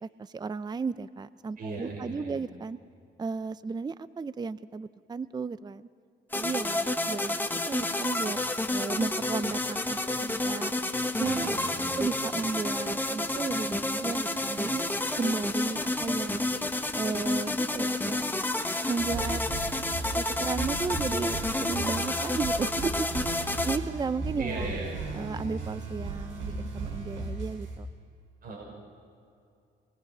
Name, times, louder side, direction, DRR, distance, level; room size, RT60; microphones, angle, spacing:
voice 1, 0.0-2.8 3.2-5.9 6.3-8.4 8.7-10.7 11.2-11.5 12.0-14.8 15.2-16.5 16.9-18.2 18.9-19.4 20.1-23.1 23.3-24.7 25.1-27.9, right 4 dB, 20° right, 15 dB, 0.5 m, -34 dB
voice 2, 1.6-2.4 11.2-12.0 24.4-25.0 28.4-28.6, right 2 dB, 45° right, -2 dB, 6.0 m, -38 dB
sound 1, 6.3-23.8, left 2 dB, 10° left, 1.3 m, -30 dB
sound 2, 19.0-27.8, right 3 dB, 75° right, 7.1 m, -36 dB
26.0 x 22.0 x 6.1 m, 2.5 s
cardioid pair, 90°, 20 cm